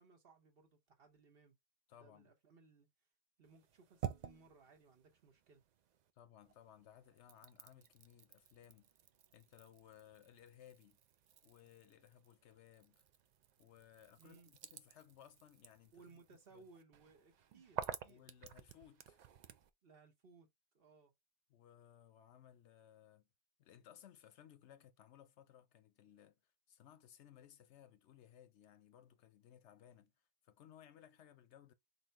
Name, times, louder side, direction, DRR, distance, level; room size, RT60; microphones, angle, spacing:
voice 1, 0.0-1.6 1.9-2.9 3.4-5.6 14.2-14.5 15.9-18.3 19.8-20.5 20.7-21.1, right 4 dB, 50° right, 1.1 m, -64 dB
voice 2, 1.9-2.3 6.2-8.9 9.3-11.0 11.4-13.0 13.6-16.1 16.5-16.6 18.1-19.2 21.5-23.3 23.6-30.1 30.4-31.7, left 10 dB, 70° left, 0.8 m, -62 dB
sound 1, 3.4-6.1 6.4-19.7, right 9 dB, 75° right, 0.4 m, -51 dB
3.8 x 2.7 x 4.5 m
omnidirectional pair, 1.3 m